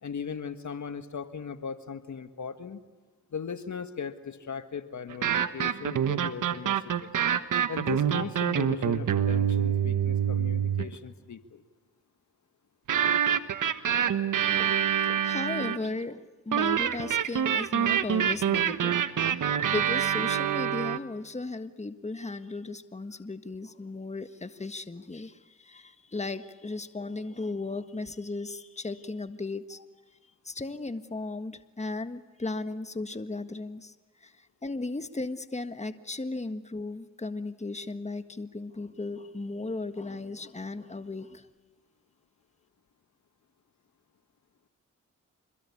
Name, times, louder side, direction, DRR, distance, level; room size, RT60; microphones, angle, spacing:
voice 1, 0.0-2.8 3.3-7.1 7.7-11.6, left 6 dB, 60° left, 9 dB, 1.6 m, -38 dB
sound 1, 5.1-11.0 12.9-15.9 16.5-21.0, right 9 dB, 70° right, 1.3 m, -26 dB
voice 2, 14.6-19.0 19.3-29.8 30.4-41.5, left 3 dB, 20° left, 10 dB, 1.6 m, -36 dB
26.5 x 22.0 x 8.6 m, 1.3 s
supercardioid pair, 45°, 32 cm